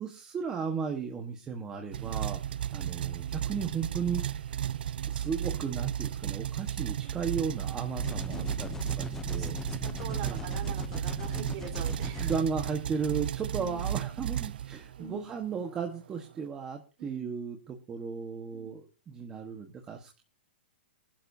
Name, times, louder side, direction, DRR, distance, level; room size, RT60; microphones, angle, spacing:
voice 1, 0.0-2.4 2.7-4.6 5.1-10.5 12.2-20.2, right 6 dB, 15° right, 3 dB, 1.3 m, -35 dB
sound 1, 1.9-15.1, right 10 dB, 65° right, 0.5 m, -34 dB
sound 2, 8.0-12.4, left 5 dB, 10° left, 0.6 m, -40 dB
voice 2, 8.3-8.6 9.3-9.5 9.8-12.3 13.5-13.9 15.0-15.3 17.0-17.3 18.5-18.8, right 5 dB, 30° right, 3 dB, 3.9 m, -44 dB
20.5 x 12.0 x 2.7 m, 0.31 s
hypercardioid pair, 165°, 6 cm